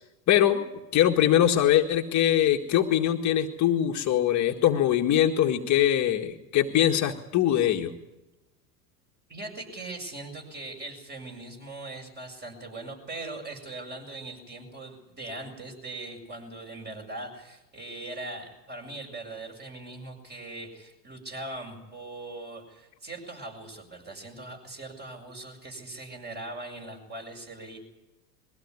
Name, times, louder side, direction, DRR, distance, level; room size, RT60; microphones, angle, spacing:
voice 1, 0.3-0.6 0.9-7.9, left 11 dB, 35° left, 3 dB, 1.8 m, -22 dB
voice 2, 9.3-27.8, right 2 dB, 20° right, 3 dB, 7.4 m, -40 dB
22.5 x 16.0 x 9.8 m, 1.0 s
hypercardioid pair, 100°, 46 cm